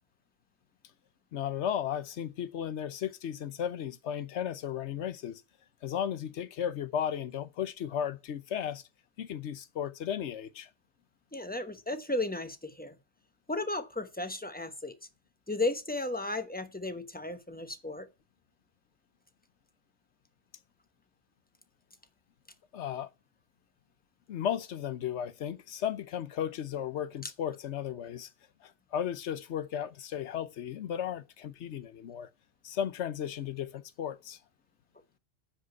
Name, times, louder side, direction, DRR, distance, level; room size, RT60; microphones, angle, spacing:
voice 1, 1.3-5.4 5.8-8.8 9.2-10.7 22.7-23.1 24.3-28.3 28.6-32.3 32.6-34.4, left 9 dB, 85° left, 1.1 m, -35 dB
voice 2, 11.3-13.0 13.5-14.9 15.5-18.1 27.2-27.3, left 2 dB, 10° left, 0.9 m, -34 dB
10.0 x 5.1 x 8.2 m
omnidirectional pair, 1.1 m